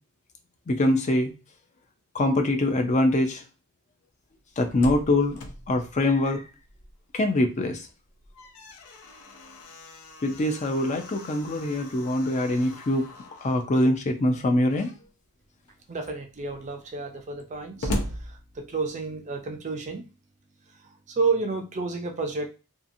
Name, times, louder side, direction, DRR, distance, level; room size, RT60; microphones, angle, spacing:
voice 1, 0.7-1.3 2.1-3.4 4.6-5.4 5.7-6.4 7.1-7.8 10.2-13.1 13.4-14.9, left 1 dB, 35° left, 5 dB, 0.4 m, -23 dB
Slam, 4.4-7.2 7.5-7.6 8.1-13.7 14.6-15.1 15.7-15.8 16.0-19.1, left 1 dB, 80° left, 0.6 m, -39 dB
voice 2, 15.9-17.9 18.6-20.0 21.1-22.5, right 4 dB, 35° right, 4 dB, 0.4 m, -30 dB
2.8 x 2.4 x 2.5 m, 0.33 s
head